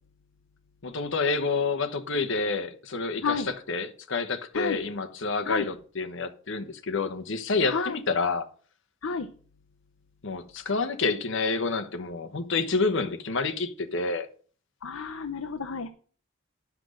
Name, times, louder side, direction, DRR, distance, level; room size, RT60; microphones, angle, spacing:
voice 1, 0.8-3.4 3.7-8.5 10.2-14.3, left 4 dB, 65° left, 1.0 m, -28 dB
voice 2, 14.8-15.9, left 5 dB, 80° left, 0.7 m, -30 dB
10.0 x 6.0 x 6.4 m
head